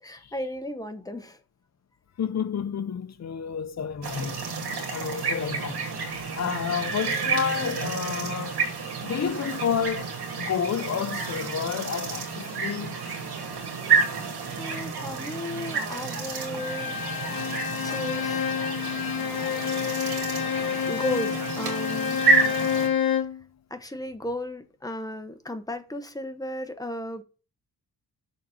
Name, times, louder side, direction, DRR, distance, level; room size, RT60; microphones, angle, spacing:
voice 1, 0.0-1.4 14.6-17.0 17.8-18.5 20.9-22.2 23.7-27.2, left 1 dB, 10° left, 0.9 m, -35 dB
voice 2, 2.2-4.5 4.9-5.9 6.3-8.6 9.0-13.0, left 7 dB, 40° left, 0.8 m, -30 dB
sound 1, 4.0-22.9, right 4 dB, 70° right, 2.5 m, -29 dB
Bowed string instrument, 16.6-23.4, left 8 dB, 60° left, 1.2 m, -28 dB
6.6 x 4.2 x 6.3 m
wide cardioid pair, 130°, 40 cm